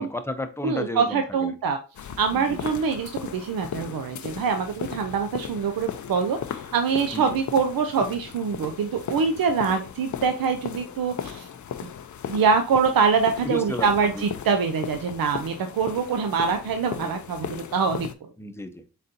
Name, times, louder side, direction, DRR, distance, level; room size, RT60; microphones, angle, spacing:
voice 1, 0.0-1.6 2.3-2.7 7.1-7.4 13.4-14.4 18.4-18.9, left 1 dB, 5° left, 8 dB, 0.6 m, -33 dB
voice 2, 0.6-1.8 2.2-6.4 6.7-11.5 12.3-18.1, right 5 dB, 75° right, 6 dB, 0.6 m, -24 dB
sound 1, 1.9-18.1, left 8 dB, 55° left, 0.5 m, -37 dB
4.1 x 3.7 x 2.6 m, 0.31 s
cardioid pair, 45°, 35 cm